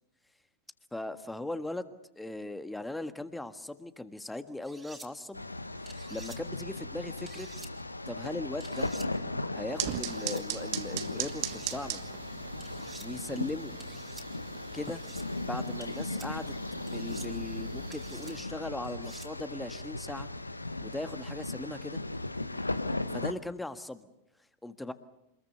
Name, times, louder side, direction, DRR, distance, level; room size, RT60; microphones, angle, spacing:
voice 1, 0.9-5.4 5.8-7.5 8.1-8.9 9.5-12.0 13.0-13.8 14.7-15.0 15.4-16.5 16.9-20.3 20.8-22.0 23.1-24.1 24.6-24.9, left 2 dB, 5° left, 10 dB, 1.5 m, -39 dB
sound 1, 4.6-5.1 5.9-6.4 7.3-7.7 8.6-9.1 9.9-10.4 11.3-11.8 12.6-13.1 13.8-14.3 14.9-15.3 15.8-16.3 16.9-17.3 17.9-18.3 18.8-19.3, right 3 dB, 10° right, 3.4 m, -50 dB
sound 2, 5.3-23.3, left 2 dB, 85° left, 1.0 m, -37 dB
sound 3, 9.8-18.4, right 14 dB, 45° right, 1.5 m, -41 dB
27.0 x 21.5 x 7.0 m, 0.87 s
figure-of-eight pair, 90°, 0 cm